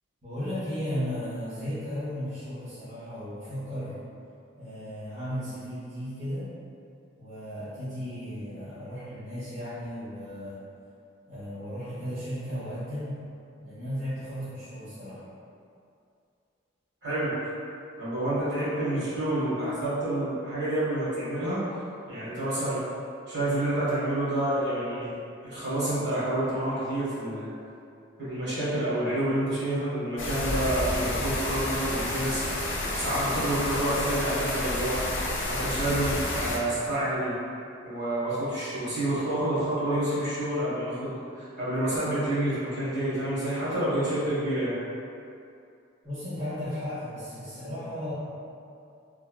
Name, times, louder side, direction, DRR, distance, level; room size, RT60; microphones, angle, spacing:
voice 1, 0.2-4.0 4.6-6.5 7.2-10.6 11.3-13.2 13.6-15.2 46.0-48.1, equal, 35° right, -14 dB, 0.9 m, -35 dB
voice 2, 17.0-17.3 17.9-21.6 22.1-22.8 23.3-25.1 25.4-27.5 28.2-32.7 32.9-34.9 35.4-37.4 37.8-44.7, right 1 dB, 65° right, -11 dB, 1.3 m, -28 dB
sound 1, 30.2-36.6, left 1 dB, 70° left, 0.5 m, -30 dB
3.3 x 2.3 x 2.3 m, 2.5 s
head